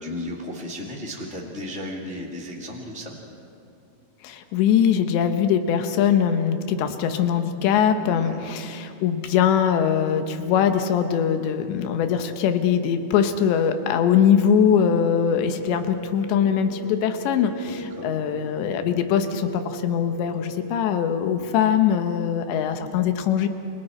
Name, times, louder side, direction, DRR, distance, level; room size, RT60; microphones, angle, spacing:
voice 1, 0.0-3.1 8.0-8.4 17.7-18.1, left 1 dB, 30° left, -3 dB, 1.3 m, -34 dB
voice 2, 4.2-23.5, left 8 dB, 75° left, 7 dB, 3.3 m, -22 dB
Wind instrument woodwind instrument, 14.2-20.9, right 3 dB, 60° left, 3.4 m, -39 dB
30.0 x 24.5 x 4.5 m, 2.5 s
omnidirectional pair, 5.2 m